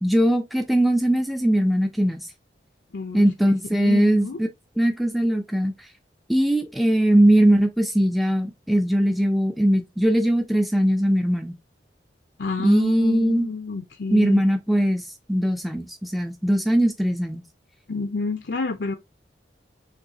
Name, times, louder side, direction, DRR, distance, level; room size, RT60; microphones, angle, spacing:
voice 1, 0.0-2.3 3.1-4.5 4.8-5.7 6.3-11.6 12.6-13.5 14.1-17.4, right 1 dB, ahead, 0.5 m, -20 dB
voice 2, 2.9-4.4 12.4-14.4 17.9-19.0, left 3 dB, 75° left, 0.6 m, -29 dB
6.6 x 2.7 x 2.8 m
head